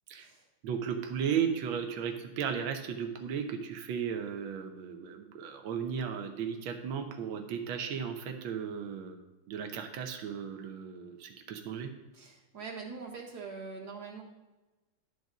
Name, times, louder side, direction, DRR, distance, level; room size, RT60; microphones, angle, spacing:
voice 1, 0.6-9.2 9.5-11.9, right 7 dB, 70° right, 5 dB, 1.6 m, -35 dB
voice 2, 12.1-14.2, right 4 dB, 50° right, -2 dB, 1.9 m, -43 dB
12.0 x 4.0 x 6.0 m, 1.1 s
omnidirectional pair, 2.4 m